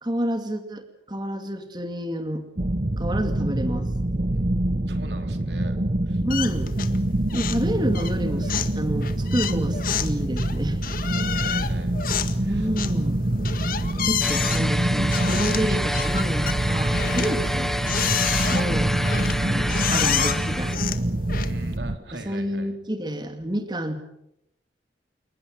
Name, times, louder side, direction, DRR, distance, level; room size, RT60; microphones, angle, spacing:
voice 1, 0.0-2.5 3.0-3.9 5.4-5.5 6.2-6.8 7.3-10.8 12.4-13.2 14.0-17.7 18.5-18.9 19.4-20.8 22.1-24.0, equal, 25° right, 7 dB, 2.4 m, -29 dB
sound 1, 2.6-22.0, right 1 dB, 40° right, 0.9 m, -26 dB
voice 2, 4.9-5.8 6.1-6.2 11.3-12.0 12.4-12.7 18.3-18.6 21.4-22.7, right 2 dB, 75° right, 6 dB, 3.6 m, -41 dB
Wooden Door Squeaks, 6.3-7.0 7.3-7.7 7.9-21.8, left 8 dB, 50° left, 1.9 m, -30 dB
sound 2, 14.2-20.8, equal, ahead, 1.3 m, -29 dB
29.0 x 20.0 x 7.3 m, 0.80 s
head